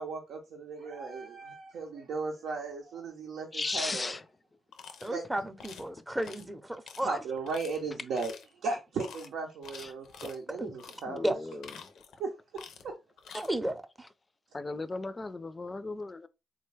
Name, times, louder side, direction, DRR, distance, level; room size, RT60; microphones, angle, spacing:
voice 1, 0.0-4.2 5.1-5.2 7.0-8.3 8.6-11.2 12.2-12.9, right 4 dB, 80° right, 0.7 m, -36 dB
voice 2, 3.5-4.2 5.0-5.1 6.0-6.2 9.7-9.9 11.1-11.9 13.3-13.4 14.5-16.3, left 3 dB, 30° left, 0.4 m, -37 dB
sound 1, 4.7-5.1 5.6-5.9 6.2-6.5 6.9-7.0 7.5-7.8 8.1-8.5 9.0-9.3 9.6-10.4 10.8-11.0 11.5-12.2 12.5-12.9 13.2-13.5, left 7 dB, 80° left, 0.5 m, -48 dB
voice 3, 5.0-7.2 10.5-10.7 11.2-11.3 13.3-14.1, right 1 dB, 10° right, 0.6 m, -33 dB
3.6 x 2.2 x 3.2 m
cardioid pair, 65°, 0 cm